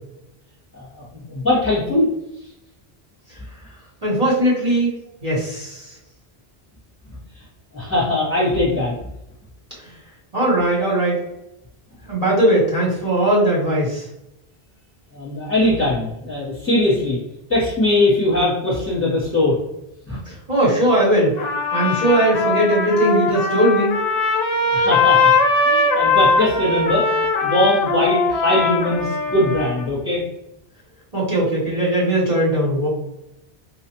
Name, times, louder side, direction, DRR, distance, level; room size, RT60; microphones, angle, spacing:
voice 1, 0.7-2.1 7.3-7.4 7.7-8.9 15.1-17.2 17.5-19.5 20.1-20.2 24.7-25.3 25.6-27.1 27.4-30.2, left 1 dB, 15° left, -9 dB, 1.1 m, -20 dB
voice 2, 4.0-4.9 5.2-6.0 9.8-9.9 10.3-11.2 12.1-14.1 20.3-21.4 21.7-23.9 31.1-32.9, right 1 dB, 40° right, -6 dB, 1.2 m, -19 dB
Trumpet, 21.4-29.8, left 3 dB, 50° left, 0.7 m, -20 dB
4.1 x 2.4 x 2.9 m, 0.89 s
omnidirectional pair, 1.1 m